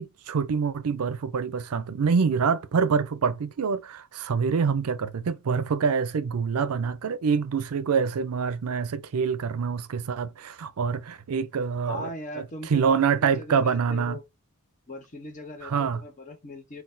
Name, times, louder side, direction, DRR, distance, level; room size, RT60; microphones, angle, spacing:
voice 1, 0.0-12.1 12.4-12.5 12.7-14.2 15.6-16.0, right 6 dB, 75° right, 0.5 m, -26 dB
voice 2, 11.9-14.2 14.9-16.8, left 1 dB, 35° left, 0.8 m, -39 dB
3.9 x 2.3 x 2.6 m
head